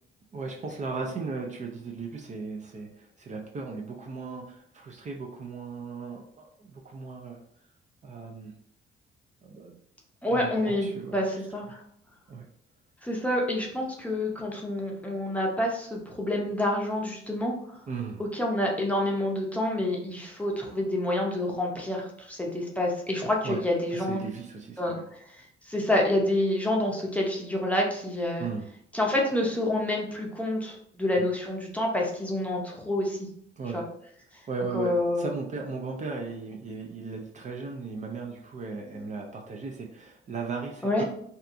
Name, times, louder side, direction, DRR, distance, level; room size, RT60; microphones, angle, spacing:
voice 1, 0.3-7.4 8.0-8.5 9.4-9.8 10.3-11.4 11.7-11.8 12.3-12.5 17.9-18.2 23.4-23.6 23.9-25.0 28.4-28.7 31.2-31.3 33.6-33.8 34.5-41.0, right 4 dB, 35° right, 1 dB, 0.4 m, -37 dB
voice 2, 10.2-11.8 13.0-17.5 18.2-24.2 24.8-25.0 25.3-28.5 28.9-33.3 33.7-33.8 34.7-35.3 40.8-41.0, left 1 dB, 5° left, -1 dB, 0.6 m, -28 dB
2.7 x 2.3 x 2.5 m, 0.67 s
cardioid pair, 90°, 20 cm